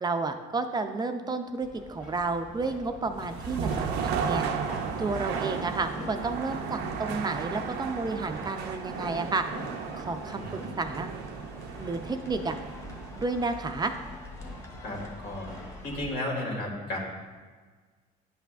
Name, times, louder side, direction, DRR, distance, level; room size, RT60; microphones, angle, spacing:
voice 1, 0.0-4.5 5.0-9.4 9.9-11.1 11.8-12.6 13.2-13.9, right 3 dB, 25° right, 7 dB, 0.4 m, -31 dB
sound 1, 1.6-16.1, left 2 dB, 55° left, 2.1 m, -45 dB
sound 2, 3.1-15.0, right 6 dB, 85° right, 0.5 m, -35 dB
sound 3, 3.4-16.0, left 1 dB, 15° left, 1.1 m, -49 dB
voice 2, 14.8-15.5 15.8-17.0, left 1 dB, 75° left, -2 dB, 2.0 m, -33 dB
10.5 x 5.8 x 2.4 m, 1.5 s
cardioid pair, 110°, 17 cm